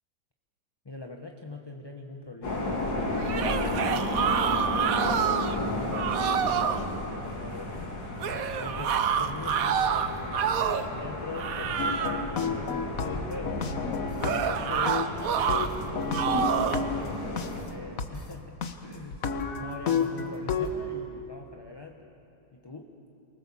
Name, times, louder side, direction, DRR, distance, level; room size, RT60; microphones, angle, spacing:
voice 1, 0.8-3.1 3.4-4.7 5.5-8.0 8.3-10.5 10.9-13.6 14.2-18.6 18.8-22.1 22.5-22.9, left 3 dB, 20° left, 2 dB, 0.8 m, -42 dB
sound 1, 2.4-17.6, left 2 dB, 75° left, 3.6 m, -33 dB
sound 2, 3.2-5.6 5.9-6.8 8.2-10.9 11.3-12.3 14.2-15.7 16.1-16.9, right 8 dB, 60° right, 1.1 m, -27 dB
sound 3, 11.8-14.6 14.9-17.5 18.0-18.1 18.6-18.7 19.1-20.7, left 5 dB, 55° left, 1.4 m, -31 dB
24.0 x 20.0 x 7.2 m, 2.7 s
omnidirectional pair, 2.0 m